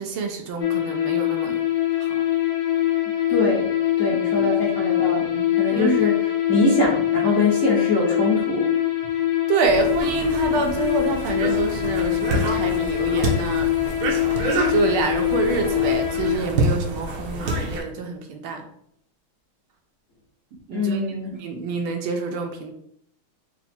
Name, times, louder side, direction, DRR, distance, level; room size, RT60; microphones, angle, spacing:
voice 1, 0.0-1.6 2.0-2.1 4.4-4.5 5.1-6.0 9.5-13.7 14.7-18.7 20.7-21.0 21.4-22.7, right 4 dB, 80° right, 4 dB, 1.5 m, -26 dB
sound 1, 0.6-16.4, left 13 dB, 70° left, 1.3 m, -23 dB
voice 2, 3.3-8.7 20.7-21.3, left 2 dB, 45° left, -6 dB, 1.0 m, -23 dB
sound 2, 9.6-17.8, right 2 dB, 65° right, 0.9 m, -28 dB
4.1 x 2.1 x 4.3 m, 0.72 s
omnidirectional pair, 2.3 m